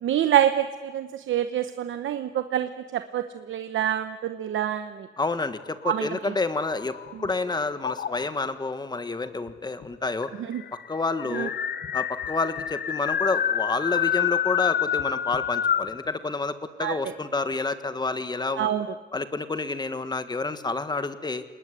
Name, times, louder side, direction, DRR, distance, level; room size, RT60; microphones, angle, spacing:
voice 1, 0.0-5.1 5.8-6.3 10.5-10.6 11.3-11.5 16.8-16.9 18.6-18.9, right 11 dB, 90° right, 10 dB, 1.0 m, -26 dB
voice 2, 5.2-7.0 7.2-10.3 10.9-11.5 11.9-18.7 19.1-21.4, left 3 dB, 20° left, 11 dB, 1.5 m, -29 dB
sound 1, 5.8-7.3 7.8-8.5 9.5-9.6 9.8-9.9 10.2-16.0, left 9 dB, 55° left, 0.8 m, -28 dB
29.0 x 19.5 x 9.9 m, 1.5 s
wide cardioid pair, 155°, 19 cm